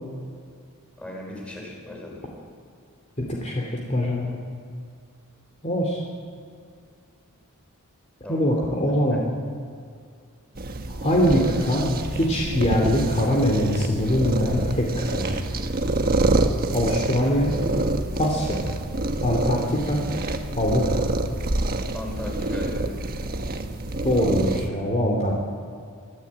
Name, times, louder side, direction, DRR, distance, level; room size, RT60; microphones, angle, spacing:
voice 1, 1.0-2.3 8.2-8.4 9.1-9.2 21.9-23.0, left 1 dB, 5° left, -2 dB, 5.5 m, -36 dB
voice 2, 3.2-4.3 5.6-6.0 8.3-9.2 10.9-15.4 16.7-17.5 18.2-18.6 19.2-20.0 20.6-21.0 24.0-25.3, equal, 30° left, 0 dB, 2.8 m, -23 dB
sound 1, 10.5-24.7, right 2 dB, 40° right, 1.3 m, -27 dB
24.0 x 13.0 x 8.6 m, 2.3 s
head